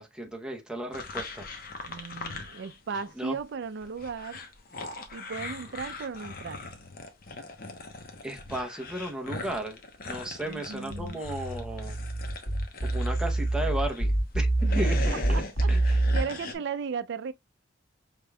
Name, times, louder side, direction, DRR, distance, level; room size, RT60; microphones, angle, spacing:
voice 1, 0.0-1.5 3.2-3.3 8.2-9.8 10.1-12.0 12.9-14.5 14.7-15.4 15.7-16.0, right 1 dB, 5° right, 0.7 m, -34 dB
sound 1, 0.9-3.1 3.4-14.0 14.5-16.5, left 3 dB, 45° left, 0.9 m, -40 dB
voice 2, 1.9-4.4 5.1-6.6 10.4-11.2 14.6-15.8 16.1-17.3, right 5 dB, 60° right, 0.4 m, -36 dB
sound 2, 10.9-16.2, right 2 dB, 90° left, 2.2 m, -26 dB
5.1 x 3.6 x 2.2 m
head